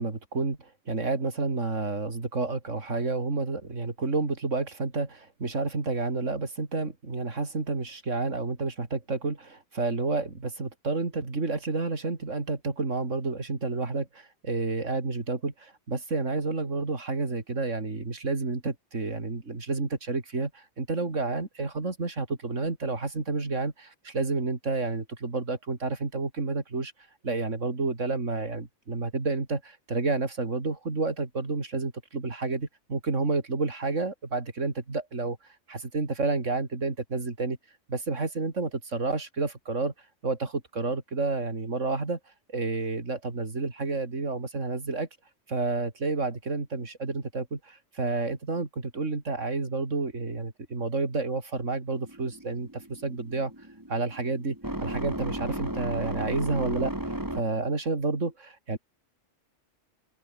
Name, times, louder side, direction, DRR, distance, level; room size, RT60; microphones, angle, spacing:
voice 1, 0.0-26.9 27.2-35.4 35.7-37.6 37.9-39.9 40.2-42.2 42.5-45.1 45.5-53.5 53.9-56.9 57.3-58.8, right 3 dB, 80° right, 3.7 m, -30 dB
sound 1, 51.9-57.8, right 1 dB, 15° right, 4.2 m, -35 dB
open air
omnidirectional pair, 1.3 m